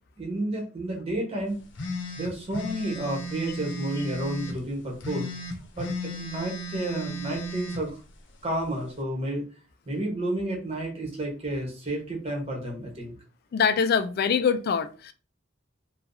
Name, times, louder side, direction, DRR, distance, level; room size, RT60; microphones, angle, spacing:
voice 1, 0.2-1.6 2.1-5.3 5.7-8.0 8.4-9.4 9.9-13.1, right 1 dB, 35° right, 1.2 m, -31 dB
sound 1, 1.8-4.6 5.0-7.8, equal, 75° left, 0.7 m, -35 dB
voice 2, 13.5-15.1, left 6 dB, 55° left, 0.3 m, -24 dB
2.8 x 2.3 x 3.8 m
head